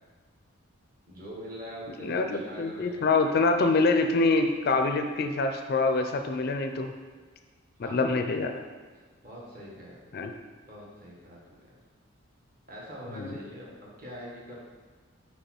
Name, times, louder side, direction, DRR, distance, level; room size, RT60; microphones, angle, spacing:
voice 1, 1.1-3.0 7.8-8.1 9.2-10.0 10.7-11.6 12.7-14.6, equal, 45° right, -4 dB, 1.6 m, -43 dB
voice 2, 2.0-6.9 7.8-8.6 10.1-10.3 13.1-13.3, left 3 dB, 45° left, 6 dB, 0.4 m, -25 dB
5.4 x 4.7 x 4.4 m, 1.4 s
head